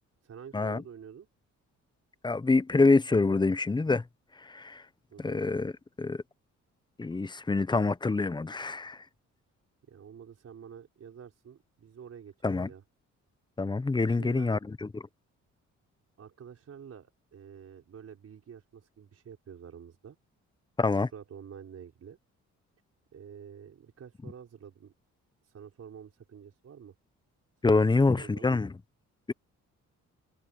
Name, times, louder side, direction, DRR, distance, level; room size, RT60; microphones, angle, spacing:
voice 1, 0.2-1.3 5.1-5.5 9.8-12.8 14.0-14.6 16.2-20.2 20.9-22.2 23.1-24.9 25.4-26.9 27.6-28.6, right 8 dB, 55° right, 5.3 m, -48 dB
voice 2, 2.2-4.0 4.5-4.8 5.2-5.7 6.0-6.2 7.0-9.0 12.4-12.7 13.6-15.0 20.8-21.1 27.6-28.7, left 3 dB, 15° left, 0.8 m, -26 dB
cardioid pair, 90°, 30 cm